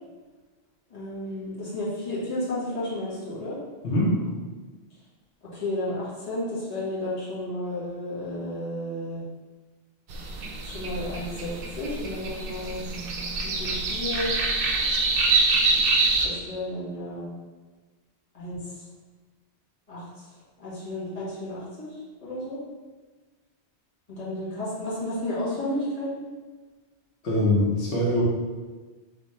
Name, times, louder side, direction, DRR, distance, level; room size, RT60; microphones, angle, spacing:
voice 1, 0.9-3.6 5.5-9.2 10.6-12.8 13.4-14.3 16.2-17.3 18.3-18.6 19.9-20.1 20.6-21.9 22.2-22.6 24.1-26.2, left 1 dB, 35° left, -9 dB, 1.5 m, -32 dB
sound 1, 10.1-16.3, right 3 dB, 60° right, 0.7 m, -25 dB
voice 2, 27.2-28.2, left 1 dB, 85° left, -5 dB, 1.3 m, -22 dB
3.3 x 3.3 x 4.2 m, 1.3 s
omnidirectional pair, 1.1 m